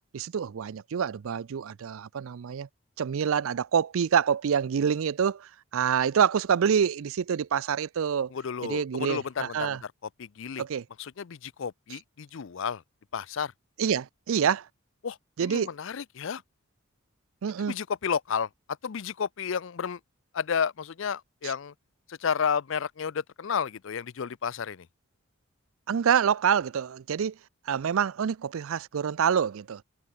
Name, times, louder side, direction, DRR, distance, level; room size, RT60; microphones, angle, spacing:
voice 1, 0.1-2.7 3.0-8.3 8.6-9.8 10.6-10.8 13.8-14.7 15.4-15.7 17.4-17.7 21.4-21.5 25.9-27.4 27.7-29.8, right 7 dB, 70° right, 0.4 m, -26 dB
voice 2, 8.3-9.8 10.2-10.6 11.0-12.8 13.1-13.5 15.0-16.4 17.7-18.5 18.8-20.0 20.3-21.7 22.1-24.9, left 6 dB, 60° left, 0.4 m, -31 dB
head